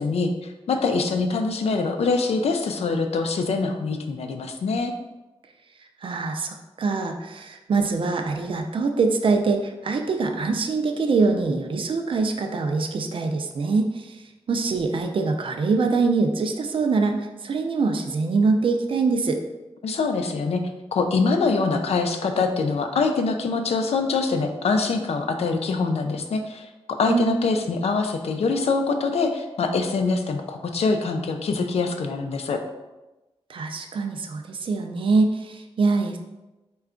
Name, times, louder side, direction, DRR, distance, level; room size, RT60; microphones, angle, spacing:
voice 1, 0.0-4.9 19.8-20.6 20.9-32.6, left 4 dB, 75° left, 5 dB, 0.4 m, -24 dB
voice 2, 6.0-19.4 27.1-27.4 33.5-36.2, right 4 dB, 55° right, 5 dB, 0.4 m, -24 dB
4.3 x 2.3 x 3.7 m, 1.1 s
wide cardioid pair, 120°, 11 cm